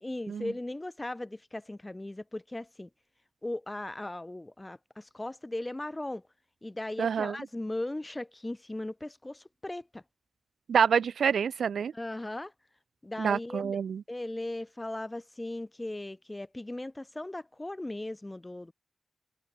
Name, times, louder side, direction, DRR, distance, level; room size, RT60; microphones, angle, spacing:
voice 1, 0.0-2.9 3.4-6.2 6.6-10.0 11.9-12.5 13.0-13.8 14.1-18.7, left 1 dB, 25° left, 1.9 m, -38 dB
voice 2, 7.0-7.4 10.7-11.9 13.2-14.0, right 7 dB, 85° right, 0.5 m, -27 dB
cardioid pair, 45°, 0 cm